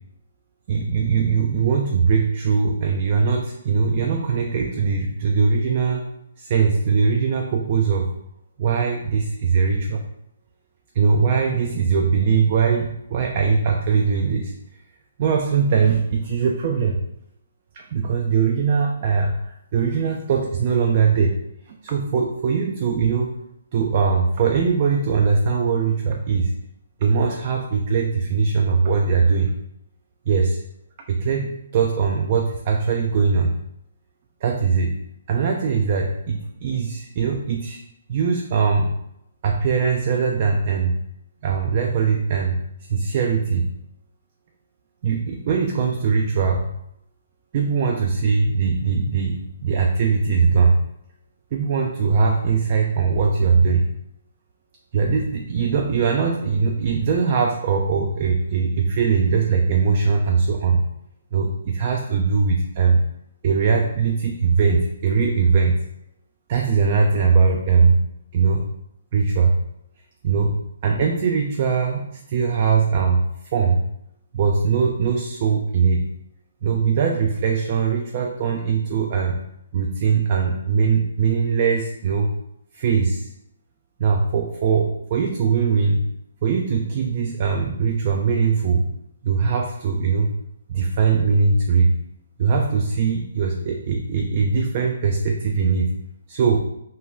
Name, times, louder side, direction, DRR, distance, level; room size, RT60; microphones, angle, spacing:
voice 1, 0.7-6.1 6.4-8.1 8.6-10.0 10.9-14.5 15.2-17.0 17.7-21.4 21.7-23.4 23.7-26.5 27.0-29.6 30.3-30.6 31.1-33.6 34.4-35.0 35.3-37.8 38.1-39.0 39.4-41.0 41.4-43.7 45.0-46.7 47.5-50.8 51.5-53.9 54.9-60.8 61.3-63.0 63.4-65.8 66.5-68.0 68.3-68.7 69.1-69.6 70.2-70.6 70.8-73.2 73.5-73.9 74.3-76.1 76.6-79.4 79.7-82.3 82.7-83.3 84.0-86.1 86.4-88.9 89.2-90.4 90.7-91.9 92.4-95.9 96.3-96.6, right 5 dB, 40° right, 2 dB, 0.3 m, -21 dB
2.6 x 2.2 x 3.5 m, 0.79 s
figure-of-eight pair, 140°, 0 cm